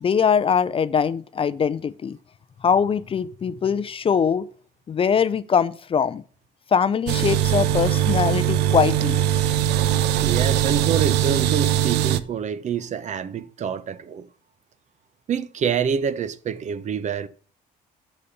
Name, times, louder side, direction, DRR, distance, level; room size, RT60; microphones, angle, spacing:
voice 1, 0.0-2.2 2.6-4.5 4.9-6.2 6.7-9.2, left 7 dB, 35° left, 0.5 m, -22 dB
sound 1, 7.1-12.2, right 11 dB, 85° right, 0.7 m, -21 dB
voice 2, 10.2-14.3 15.3-17.3, right 7 dB, 45° right, 0.8 m, -26 dB
10.5 x 4.2 x 6.9 m
cardioid pair, 110°, 17 cm